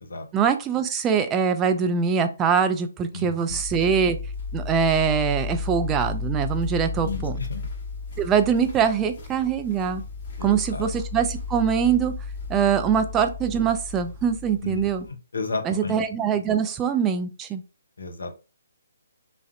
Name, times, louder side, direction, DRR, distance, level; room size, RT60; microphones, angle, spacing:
voice 1, 0.3-4.2 4.5-7.4 8.2-10.0 10.4-12.1 12.5-15.0 15.6-17.6, right 7 dB, 15° right, 8 dB, 0.3 m, -23 dB
voice 2, 3.1-3.6 7.0-7.7 10.4-10.9 14.6-14.9 15.3-16.0 18.0-18.3, left 4 dB, 70° left, 6 dB, 0.7 m, -32 dB
sound 1, 3.5-15.1, left 4 dB, 40° left, 1.1 m, -34 dB
2.4 x 2.0 x 2.6 m, 0.31 s
figure-of-eight pair, 135°, 0 cm